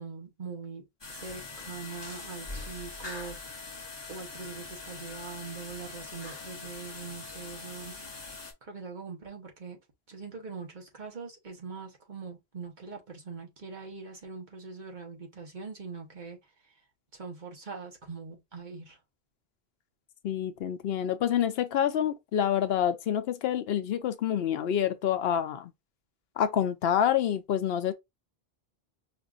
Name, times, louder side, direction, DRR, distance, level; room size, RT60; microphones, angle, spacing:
voice 1, 0.0-3.4 4.1-8.0 8.6-9.8 10.1-16.4 16.7-16.8 17.1-19.0, right 5 dB, 50° right, 1.1 m, -42 dB
sound 1, 1.0-8.5, left 3 dB, 25° left, 0.9 m, -42 dB
voice 2, 20.2-25.7 26.4-27.9, left 9 dB, 75° left, 0.8 m, -27 dB
5.0 x 2.5 x 2.4 m
omnidirectional pair, 1.0 m